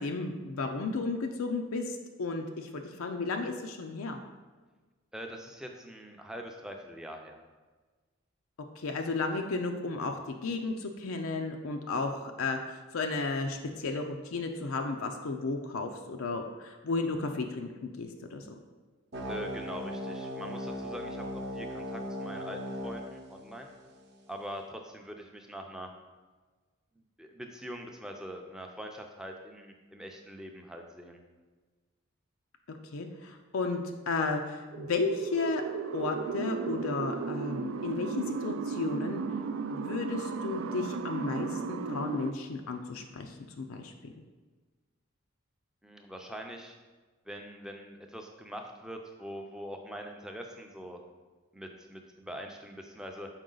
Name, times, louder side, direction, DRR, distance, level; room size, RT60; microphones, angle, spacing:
voice 1, 0.0-4.2 8.8-18.5 32.7-35.6 35.9-39.2 39.7-44.1, left 3 dB, 80° left, 4 dB, 0.5 m, -33 dB
voice 2, 5.1-7.4 19.3-23.7 24.3-25.9 27.2-31.2 45.8-46.8 47.3-51.0 51.5-53.3, equal, 5° right, 2 dB, 0.5 m, -43 dB
sound 1, 19.1-24.1, equal, 50° right, 0.7 m, -38 dB
sound 2, 34.7-42.3, right 5 dB, 75° right, 0.3 m, -35 dB
6.3 x 4.7 x 3.8 m, 1.3 s
head